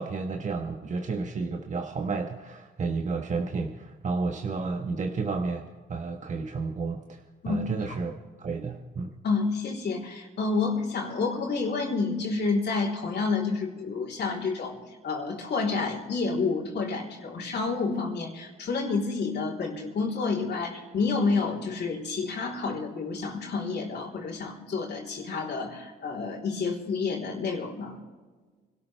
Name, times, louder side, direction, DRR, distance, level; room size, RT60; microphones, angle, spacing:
voice 1, 0.0-5.6 5.9-7.2 7.4-8.1 8.4-9.1, right 4 dB, 40° right, 3 dB, 1.3 m, -31 dB
voice 2, 7.4-7.9 9.2-14.8 15.0-28.0, left 4 dB, 60° left, -3 dB, 3.6 m, -29 dB
25.5 x 13.0 x 3.4 m, 1.4 s
cardioid pair, 90°, 20 cm